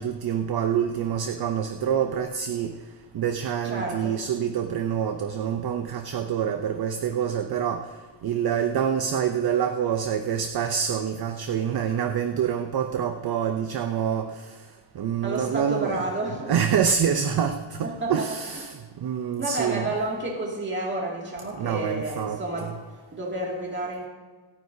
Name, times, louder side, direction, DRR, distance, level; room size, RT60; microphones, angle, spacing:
voice 1, 0.0-2.7 3.1-7.9 8.2-14.5 14.9-16.0 16.5-19.9 21.6-22.8, right 8 dB, 50° right, 7 dB, 0.6 m, -26 dB
voice 2, 3.6-4.2 15.2-16.5 17.8-18.3 19.4-22.7 23.1-24.1, right 2 dB, 25° right, -2 dB, 2.3 m, -30 dB
26.5 x 9.4 x 2.7 m, 1.3 s
wide cardioid pair, 175°, 47 cm